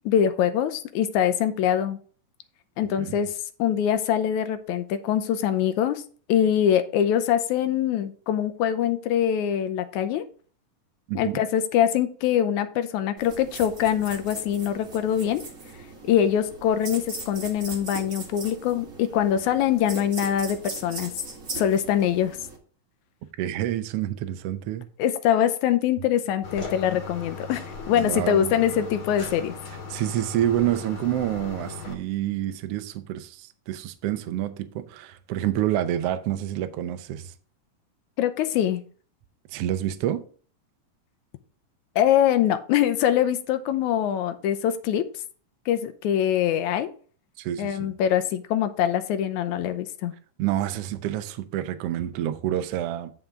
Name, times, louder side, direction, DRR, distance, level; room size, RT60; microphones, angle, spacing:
voice 1, 0.1-2.0 2.8-3.3 3.6-6.0 6.3-10.3 11.2-15.4 16.0-21.1 21.6-22.4 25.0-29.6 38.2-38.8 42.0-45.1 45.7-46.9 47.6-50.1, left 10 dB, 80° left, 1.9 m, -23 dB
voice 2, 11.1-11.4 23.4-24.9 27.9-28.5 29.9-37.3 39.5-40.2 47.4-47.9 50.4-53.1, right 12 dB, 85° right, 1.3 m, -28 dB
sound 1, 13.2-22.6, right 3 dB, 30° right, 1.7 m, -39 dB
sound 2, 26.4-31.9, left 4 dB, 50° left, 2.0 m, -38 dB
9.2 x 5.9 x 3.7 m
omnidirectional pair, 3.7 m